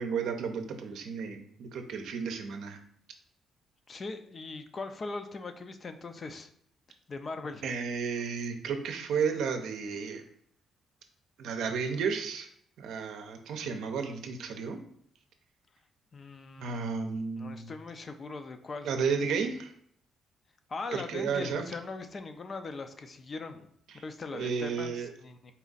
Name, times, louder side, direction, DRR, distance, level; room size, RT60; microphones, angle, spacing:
voice 1, 0.0-2.8 7.6-10.2 11.4-12.5 12.8-14.8 16.6-17.7 18.8-19.7 20.9-21.7 23.9-24.0 24.3-25.1, right 5 dB, 80° right, 5 dB, 0.6 m, -33 dB
voice 2, 3.9-6.5 7.1-7.6 16.1-16.9 17.4-18.9 20.7-23.7 24.0-25.5, left 3 dB, 40° left, 8 dB, 0.4 m, -40 dB
4.1 x 2.4 x 3.9 m, 0.67 s
cardioid pair, 90°, 0 cm